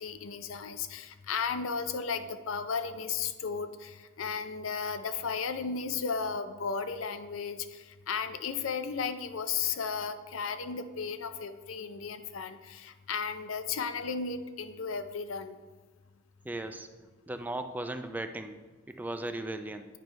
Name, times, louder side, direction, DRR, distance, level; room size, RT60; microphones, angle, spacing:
voice 1, 0.0-15.6, left 5 dB, 90° left, 10 dB, 0.5 m, -34 dB
voice 2, 16.4-16.9 17.3-18.6 19.0-19.9, right 1 dB, 10° right, 8 dB, 0.3 m, -36 dB
9.0 x 3.2 x 5.2 m, 1.4 s
head